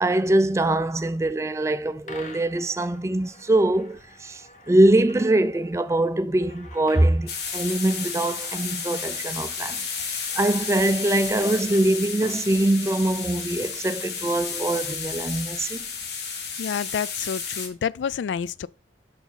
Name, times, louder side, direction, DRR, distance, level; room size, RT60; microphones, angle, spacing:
voice 1, 0.0-15.8, right 1 dB, 15° right, 0.3 m, -23 dB
sound 1, 2.1-13.3, left 2 dB, 45° left, 1.1 m, -48 dB
sound 2, 7.3-17.7, left 5 dB, 65° left, 1.4 m, -32 dB
voice 2, 16.6-18.7, left 7 dB, 80° left, 0.3 m, -29 dB
5.6 x 4.7 x 5.6 m
head